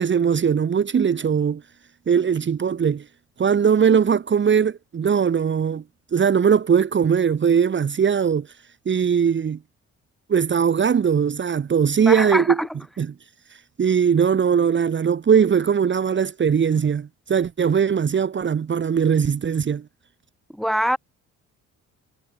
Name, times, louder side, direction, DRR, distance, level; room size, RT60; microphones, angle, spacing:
voice 1, 0.0-1.6 2.1-3.0 3.4-5.8 6.1-8.5 8.8-9.6 10.3-12.6 13.0-13.1 13.8-19.8, right 7 dB, 40° right, 1.3 m, -20 dB
voice 2, 12.1-12.7 20.5-21.0, equal, ahead, 2.6 m, -23 dB
cardioid pair, 90°, 30 cm